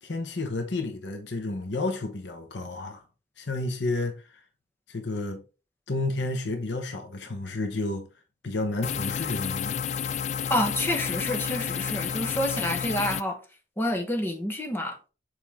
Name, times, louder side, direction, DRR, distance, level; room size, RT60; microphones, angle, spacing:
voice 1, 0.0-3.0 3.4-4.4 4.9-5.4 5.9-8.1 8.4-9.9, left 2 dB, 85° left, 1.0 m, -31 dB
sound 1, 8.8-13.2, left 8 dB, 40° left, 0.3 m, -30 dB
voice 2, 10.5-13.4 13.8-15.0, left 1 dB, 10° left, 1.1 m, -28 dB
6.7 x 4.4 x 3.5 m
head